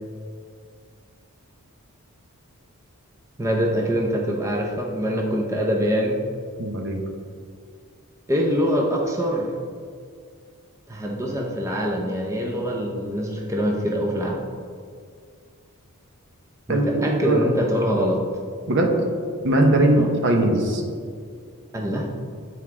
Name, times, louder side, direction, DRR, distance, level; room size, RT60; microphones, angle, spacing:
voice 1, 3.4-6.2 8.3-9.5 10.9-14.4 16.7-18.2 20.0-20.1 21.7-22.1, equal, 15° right, 0 dB, 0.6 m, -24 dB
voice 2, 6.6-7.0 16.7-17.5 18.7-18.9 19.4-20.8, right 1 dB, 55° right, 2 dB, 0.9 m, -20 dB
8.0 x 4.6 x 3.6 m, 2.1 s
head